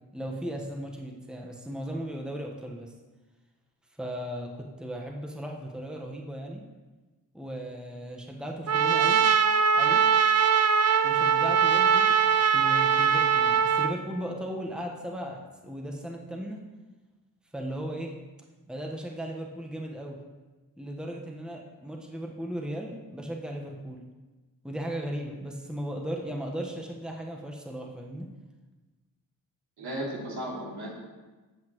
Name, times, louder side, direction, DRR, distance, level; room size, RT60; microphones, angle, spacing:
voice 1, 0.1-2.9 4.0-6.6 7.3-9.2 9.7-10.0 11.0-16.6 17.5-18.1 18.7-20.2 20.8-24.0 24.6-28.3, equal, ahead, 0 dB, 1.2 m, -36 dB
Trumpet, 8.7-13.9, right 7 dB, 45° right, 0.6 m, -22 dB
voice 2, 29.8-30.9, right 1 dB, 80° right, -4 dB, 2.9 m, -35 dB
16.0 x 5.8 x 3.1 m, 1.2 s
cardioid pair, 60°, 38 cm